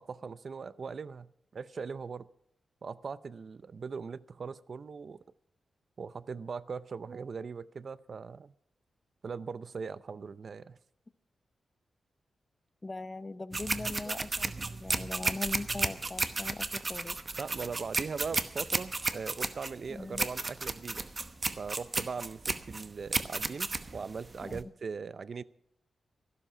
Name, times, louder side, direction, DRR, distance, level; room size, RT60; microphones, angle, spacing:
voice 1, 0.0-2.3 2.8-5.2 6.0-8.5 9.2-10.8 14.1-14.2 17.4-21.1 21.6-25.4, right 5 dB, 55° right, 17 dB, 0.5 m, -40 dB
voice 2, 12.8-17.2 19.9-20.2 24.4-24.6, left 2 dB, 25° left, 15 dB, 0.6 m, -40 dB
sound 1, 13.5-24.6, right 3 dB, 35° right, 1.0 m, -33 dB
14.0 x 12.0 x 5.7 m, 0.74 s
cardioid pair, 90°, 0 cm